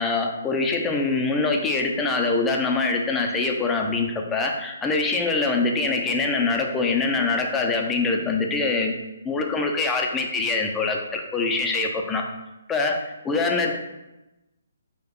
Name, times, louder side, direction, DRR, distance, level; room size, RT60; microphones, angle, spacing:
voice 1, 0.0-8.9 9.2-12.2 12.7-13.8, left 3 dB, 10° left, 1 dB, 0.5 m, -24 dB
4.7 x 2.3 x 4.5 m, 0.99 s
hypercardioid pair, 150°, 0 cm